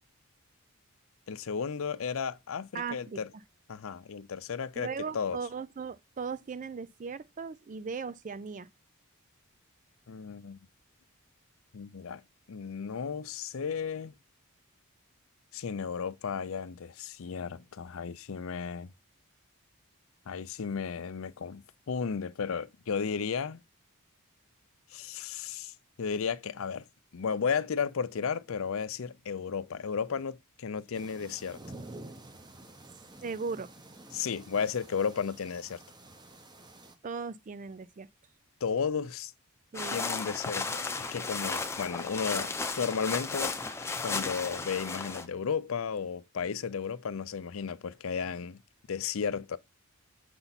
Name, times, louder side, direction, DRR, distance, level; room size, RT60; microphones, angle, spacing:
voice 1, 1.3-3.3 3.7-5.4 10.1-10.6 11.7-12.2 12.5-14.1 15.5-18.9 20.3-23.6 24.9-25.7 26.0-26.8 27.1-31.6 34.1-35.8 38.6-39.3 39.9-40.7 41.1-43.5 44.0-48.6 48.9-49.6, left 6 dB, 65° left, 0.5 m, -34 dB
voice 2, 2.7-3.4 4.8-8.7 33.2-33.7 37.0-38.1 39.7-40.0, right 5 dB, 35° right, 0.4 m, -38 dB
sound 1, 30.9-37.0, right 2 dB, 20° right, 0.7 m, -49 dB
sound 2, 39.7-45.3, left 3 dB, 10° left, 0.6 m, -34 dB
7.0 x 5.4 x 4.1 m
head